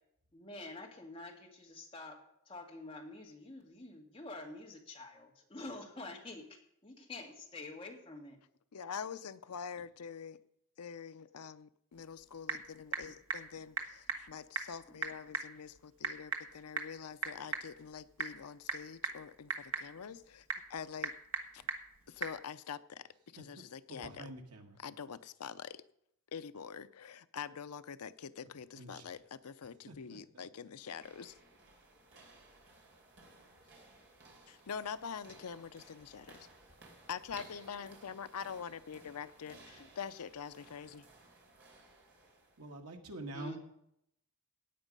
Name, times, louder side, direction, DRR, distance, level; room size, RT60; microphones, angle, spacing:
voice 1, 0.3-2.2 2.5-8.4 33.6-33.8 43.3-43.6, left 2 dB, 25° left, 0 dB, 2.1 m, -48 dB
voice 2, 8.7-10.4 10.8-21.1 22.1-23.1 23.3-24.3 24.8-25.8 26.3-31.4 34.5-36.5 37.1-41.1, left 6 dB, 85° left, 12 dB, 0.6 m, -45 dB
Typing / Telephone, 11.9-22.4, right 4 dB, 70° right, 1.5 m, -42 dB
voice 3, 23.9-24.8 28.8-29.2 29.9-30.7 42.6-43.6, right 1 dB, 90° right, 3 dB, 1.9 m, -47 dB
sound 1, 30.8-42.8, right 2 dB, 50° right, 3.4 m, -59 dB
16.5 x 8.9 x 5.4 m, 0.76 s
head